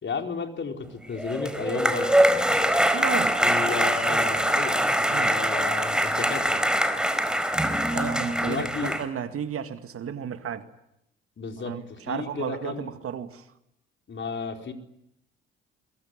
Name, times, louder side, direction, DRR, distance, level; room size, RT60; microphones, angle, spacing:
voice 1, 0.0-2.1 2.5-2.6 3.4-4.8 5.1-6.6 8.3-9.0 11.4-12.9 14.1-14.7, left 5 dB, 40° left, 4.5 m, -33 dB
sound 1, 1.2-9.0, equal, 5° right, 4.4 m, -23 dB
voice 2, 2.9-3.4 5.1-5.3 7.9-10.7 11.7-13.4, right 8 dB, 50° right, 2.2 m, -33 dB
23.5 x 23.0 x 9.8 m
hypercardioid pair, 55°, 29 cm